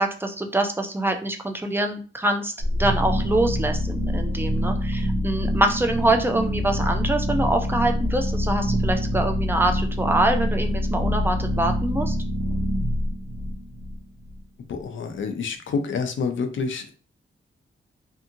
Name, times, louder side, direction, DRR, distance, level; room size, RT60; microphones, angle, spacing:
voice 1, 0.0-2.5 2.8-12.2, right 1 dB, 10° right, 5 dB, 0.4 m, -24 dB
sound 1, 2.6-14.4, equal, 80° right, 0.7 m, -25 dB
voice 2, 14.7-16.9, left 5 dB, 70° left, 6 dB, 0.4 m, -28 dB
2.6 x 2.6 x 2.5 m, 0.38 s
wide cardioid pair, 120°, 21 cm